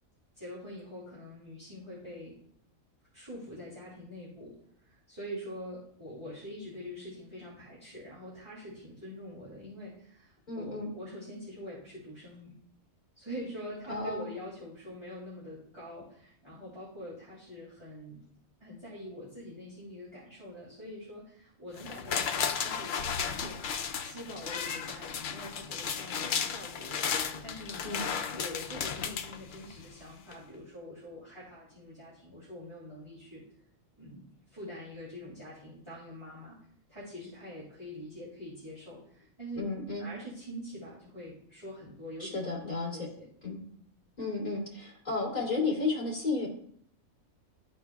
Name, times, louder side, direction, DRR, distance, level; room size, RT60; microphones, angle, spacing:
voice 1, 0.3-2.3 3.1-4.6 4.8-12.6 13.1-18.2 18.6-23.6 24.0-27.0 27.4-27.9 28.3-33.4 34.0-36.6 36.9-39.7 40.0-42.4 42.6-43.3 43.6-43.8, equal, 20° right, -9 dB, 2.5 m, -44 dB
voice 2, 10.5-10.9 13.9-14.3 27.8-28.1 39.6-40.1 42.2-43.1 43.4-43.6 44.2-46.5, left 3 dB, 30° left, -5 dB, 2.7 m, -33 dB
sound 1, 21.8-29.9 30.3-30.4, left 7 dB, 80° left, 0.4 m, -34 dB
13.0 x 4.4 x 2.3 m, 0.64 s
omnidirectional pair, 1.5 m